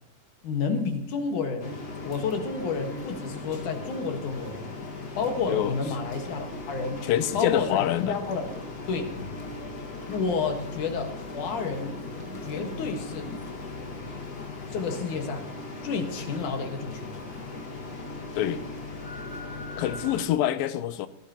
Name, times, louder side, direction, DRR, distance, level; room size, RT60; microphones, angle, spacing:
voice 1, 0.4-4.7 5.2-7.1 7.3-8.5 8.9-9.1 10.0-12.0 12.4-13.3 14.7-15.5 15.8-17.1, left 5 dB, 65° left, 4 dB, 2.9 m, -30 dB
sound 1, 1.6-20.3, left 3 dB, 40° left, 1.5 m, -38 dB
voice 2, 7.1-8.2 18.4-18.6 19.8-21.1, left 12 dB, 85° left, 12 dB, 2.5 m, -26 dB
18.5 x 17.0 x 2.9 m, 0.77 s
omnidirectional pair, 4.0 m